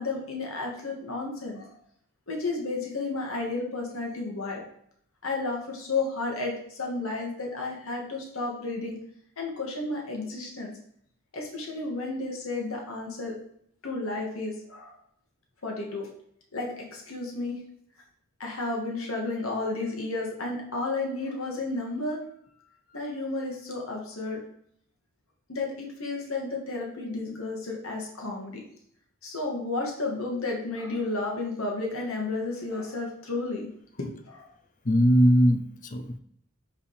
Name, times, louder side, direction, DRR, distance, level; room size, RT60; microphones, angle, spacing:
voice 1, 0.0-1.8 2.3-4.6 5.2-9.0 9.4-10.7 11.3-13.4 13.8-15.0 15.6-16.1 16.5-17.6 18.4-22.2 22.9-24.4 25.5-28.6 29.2-33.7 34.3-34.5, left 3 dB, 75° left, 0 dB, 2.1 m, -32 dB
voice 2, 34.8-36.2, equal, 40° left, 8 dB, 0.7 m, -21 dB
5.3 x 5.1 x 5.0 m, 0.68 s
head